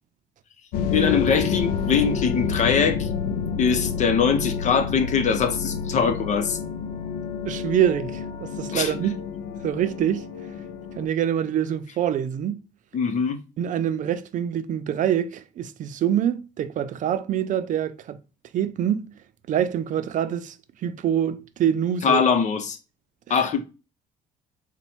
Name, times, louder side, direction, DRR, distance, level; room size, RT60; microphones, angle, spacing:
sound 1, 0.7-11.1, left 6 dB, 90° left, 0.4 m, -29 dB
voice 1, 0.9-3.1 3.6-6.6 8.7-8.9 12.9-13.4 22.0-22.8 23.3-23.6, left 6 dB, 55° left, 0.8 m, -22 dB
voice 2, 7.4-9.2 9.6-10.3 11.0-12.6 13.6-18.2 18.5-19.1 19.5-20.6 20.8-22.2 23.3-23.4, right 10 dB, 60° right, 0.5 m, -25 dB
4.1 x 2.3 x 4.2 m
supercardioid pair, 80°, 15 cm